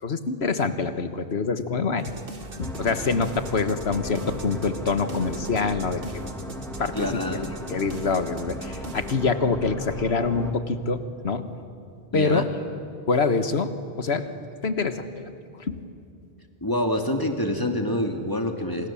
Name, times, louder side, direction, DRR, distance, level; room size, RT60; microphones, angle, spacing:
voice 1, 0.0-2.1 2.6-6.2 6.8-7.4 7.7-11.5 12.1-12.5 13.1-13.7 14.0-14.3 14.6-15.3 15.6-15.8, left 4 dB, 75° left, 9 dB, 1.7 m, -25 dB
sound 1, 2.0-9.1, right 2 dB, 60° right, 2.0 m, -41 dB
sound 2, 2.6-10.5, left 1 dB, ahead, 2.5 m, -37 dB
voice 2, 6.9-7.6 12.1-12.5 16.6-18.9, left 1 dB, 20° left, 3 dB, 2.4 m, -26 dB
30.0 x 27.0 x 7.2 m, 2.6 s
omnidirectional pair, 1.1 m